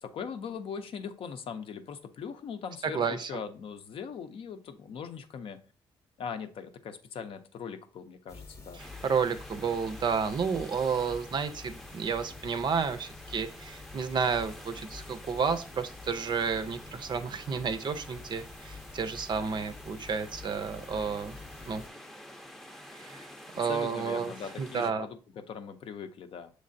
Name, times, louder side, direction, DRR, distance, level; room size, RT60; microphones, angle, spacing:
voice 1, 0.0-5.6 6.2-8.8 23.6-26.5, left 6 dB, 65° left, 8 dB, 0.5 m, -40 dB
voice 2, 2.8-3.3 8.8-21.4 21.7-21.8 22.9-23.2 23.5-25.1, right 6 dB, 50° right, 11 dB, 0.5 m, -31 dB
sound 1, 8.3-21.9, left 3 dB, 25° left, 0.8 m, -48 dB
sound 2, 8.8-24.9, equal, ahead, 0.5 m, -49 dB
6.5 x 3.2 x 2.6 m, 0.38 s
cardioid pair, 80°, 10 cm